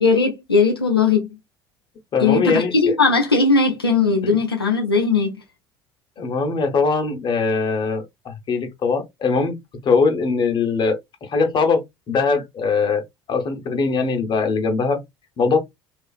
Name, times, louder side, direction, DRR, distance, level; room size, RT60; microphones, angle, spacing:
voice 1, 0.0-1.3 2.2-5.4, left 4 dB, 90° left, 0.4 m, -18 dB
voice 2, 2.1-3.0 6.2-11.0 11.3-15.0 15.4-15.6, left 4 dB, 40° left, 0.9 m, -21 dB
2.5 x 2.4 x 2.3 m
figure-of-eight pair, 60°, 12 cm